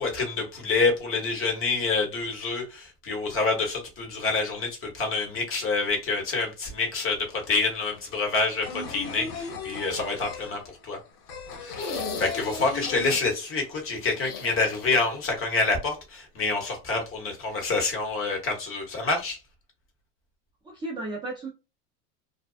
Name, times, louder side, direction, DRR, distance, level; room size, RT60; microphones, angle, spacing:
voice 1, 0.0-11.0 11.6-19.4, left 3 dB, 25° left, 1.1 m, -27 dB
sound 1, 6.9-7.0 7.2-13.8 14.1-14.2 14.5-15.3, left 4 dB, 70° left, 1.2 m, -37 dB
sound 2, 11.6-13.0 14.1-15.3 15.6-15.7 17.3-17.4, left 4 dB, 50° left, 0.8 m, -38 dB
voice 2, 20.6-21.5, right 2 dB, 10° right, 0.5 m, -34 dB
2.6 x 2.2 x 2.4 m
hypercardioid pair, 100°, 47 cm